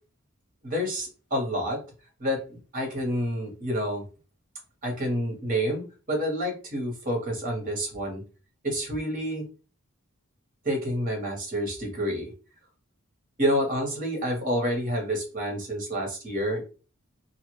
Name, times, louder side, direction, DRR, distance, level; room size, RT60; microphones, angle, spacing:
voice 1, 0.6-1.8 2.2-4.0 4.8-8.2 8.6-9.4 10.6-12.3 13.4-16.6, equal, 40° right, 1 dB, 1.1 m, -28 dB
2.5 x 2.4 x 3.1 m, 0.35 s
head